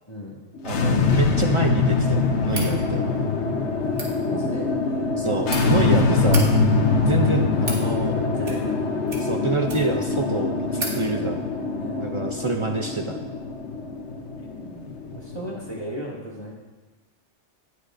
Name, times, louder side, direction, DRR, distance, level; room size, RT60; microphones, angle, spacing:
sound 1, 0.5-15.8, left 4 dB, 75° left, 1.1 m, -23 dB
voice 1, 0.6-3.1 5.2-6.5 7.0-8.1 9.2-11.4 12.0-13.2, right 4 dB, 50° right, 4 dB, 0.4 m, -27 dB
sound 2, 2.5-2.7 3.8-4.1 5.1-5.6 6.2-6.4 7.2-7.8 8.4-8.8 9.1-10.0 10.4-10.5 10.7-11.0, right 2 dB, 90° right, 1.8 m, -33 dB
voice 2, 4.3-4.7 5.9-6.2 8.1-8.8 10.8-11.2 11.8-12.1 14.4-16.5, equal, 20° left, -5 dB, 1.9 m, -36 dB
18.0 x 6.2 x 2.5 m, 1.3 s
omnidirectional pair, 1.2 m